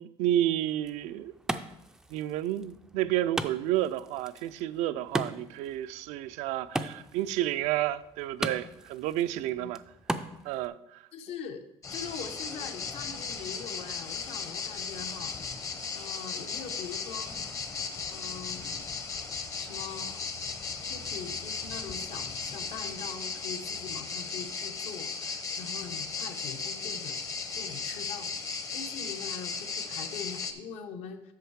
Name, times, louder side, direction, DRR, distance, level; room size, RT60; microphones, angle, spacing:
voice 1, 0.0-1.3 2.1-9.8 10.4-11.0, right 13 dB, 85° right, 14 dB, 0.4 m, -30 dB
Wood, 0.7-10.7, right 1 dB, 5° right, 0.3 m, -39 dB
voice 2, 11.1-11.7 11.9-15.3 15.9-17.3 18.1-18.8 19.6-20.2 20.9-27.2 27.5-28.3 28.7-31.3, left 6 dB, 65° left, 7 dB, 0.9 m, -42 dB
sound 1, 11.8-30.5, left 5 dB, 30° left, 0.7 m, -36 dB
8.2 x 6.3 x 4.7 m, 0.86 s
cardioid pair, 170°, 11 cm